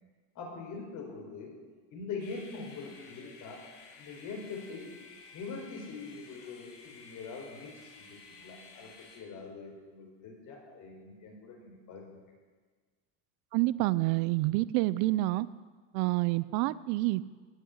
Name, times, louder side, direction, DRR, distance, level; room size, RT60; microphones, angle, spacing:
voice 1, 0.3-1.5 1.9-3.6 4.0-4.9 5.3-12.2, left 4 dB, 50° left, 0 dB, 4.5 m, -43 dB
sound 1, 2.2-9.2, left 4 dB, 80° left, 3.9 m, -53 dB
voice 2, 13.5-15.5 15.9-17.2, right 19 dB, 70° right, 18 dB, 0.5 m, -28 dB
15.5 x 6.6 x 9.7 m, 1.5 s
cardioid pair, 145°, 39 cm